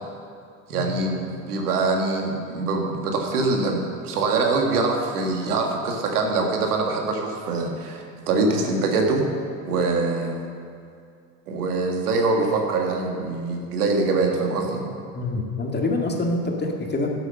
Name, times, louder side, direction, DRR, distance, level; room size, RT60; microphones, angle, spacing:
voice 1, 0.7-9.2 9.6-10.3 11.5-14.8, right 3 dB, 80° right, 2 dB, 1.8 m, -24 dB
voice 2, 15.1-17.1, left 2 dB, 20° left, 1 dB, 1.9 m, -26 dB
11.0 x 8.0 x 6.7 m, 2.3 s
hypercardioid pair, 80°, 45 cm